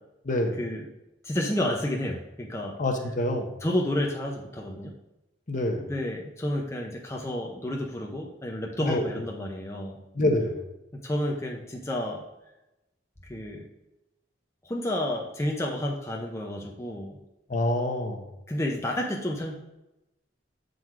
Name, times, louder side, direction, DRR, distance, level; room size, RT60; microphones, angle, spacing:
voice 1, 0.2-0.6 2.8-3.5 5.5-5.8 8.9-9.1 10.1-10.6 17.5-18.3, left 1 dB, 45° left, 3 dB, 0.9 m, -26 dB
voice 2, 1.2-2.8 3.6-4.9 5.8-10.0 10.9-12.2 13.2-13.7 14.6-17.2 18.5-19.5, left 1 dB, 15° left, -1 dB, 0.6 m, -30 dB
7.7 x 3.9 x 4.6 m, 0.95 s
head